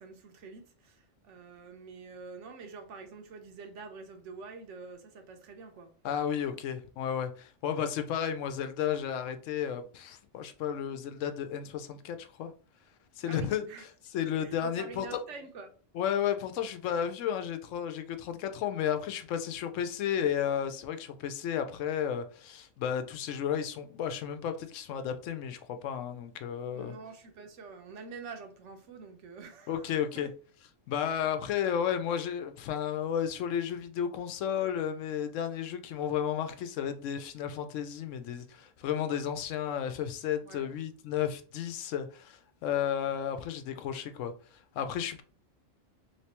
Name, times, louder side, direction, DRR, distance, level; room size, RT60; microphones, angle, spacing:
voice 1, 0.0-5.9 13.3-13.9 14.4-15.7 26.7-30.3 40.4-40.7, right 4 dB, 75° right, 1.0 m, -46 dB
voice 2, 6.0-12.5 13.2-13.7 14.1-15.2 15.9-26.9 29.7-30.3 30.9-44.3 44.8-45.2, left 9 dB, 85° left, 0.9 m, -33 dB
3.2 x 3.1 x 2.9 m
omnidirectional pair, 1.3 m